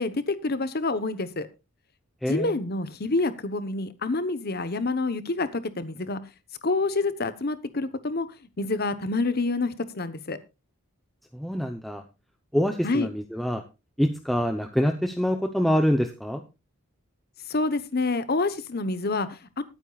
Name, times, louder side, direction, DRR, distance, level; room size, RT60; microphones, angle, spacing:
voice 1, 0.0-1.5 2.3-6.2 6.6-8.3 8.6-10.4 12.8-13.1 17.5-19.6, left 3 dB, 45° left, 13 dB, 1.1 m, -27 dB
voice 2, 2.2-2.5 11.3-12.0 12.5-13.6 14.0-16.4, equal, ahead, 5 dB, 0.8 m, -25 dB
20.0 x 9.0 x 2.4 m, 0.27 s
head